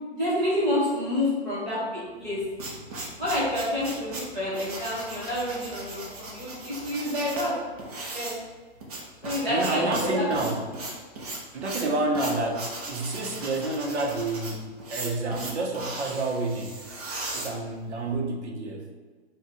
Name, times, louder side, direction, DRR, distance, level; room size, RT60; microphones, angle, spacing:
voice 1, 0.1-2.4 3.2-7.5 8.1-8.3 9.2-10.3, left 1 dB, 10° right, -10 dB, 0.4 m, -28 dB
sound 1, 2.2-18.1, right 2 dB, 35° right, 0.8 m, -38 dB
voice 2, 9.5-10.6 11.5-16.8 17.3-18.9, right 2 dB, 80° right, 1 dB, 0.9 m, -29 dB
3.5 x 2.4 x 4.1 m, 1.4 s
hypercardioid pair, 165°, 34 cm